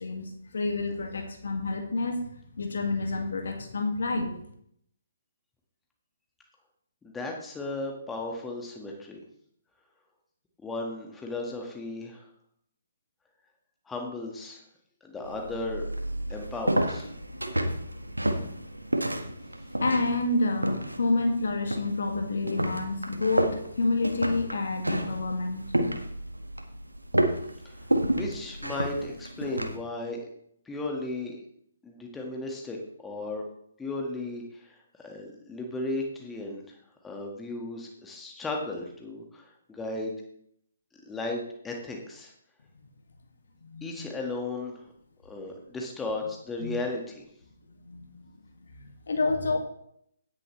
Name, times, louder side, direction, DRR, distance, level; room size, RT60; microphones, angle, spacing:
voice 1, 0.0-2.3 2.6-4.3 19.8-25.7 43.6-44.1 46.6-46.8 47.9-48.3 48.7-49.6, left 2 dB, 60° left, 3 dB, 2.1 m, -29 dB
voice 2, 7.0-9.2 10.6-12.2 13.9-14.6 15.0-15.9 16.3-17.1 27.6-27.7 28.1-30.2 30.7-31.4 31.8-32.8 33.0-33.4 33.8-34.8 35.0-36.6 37.0-40.1 41.1-42.3 43.8-44.9 45.2-47.2, left 2 dB, 10° left, 1 dB, 1.8 m, -35 dB
sound 1, 15.2-29.8, right 1 dB, 85° right, 1.5 m, -31 dB
17.0 x 6.8 x 3.2 m, 0.70 s
figure-of-eight pair, 135°, 0 cm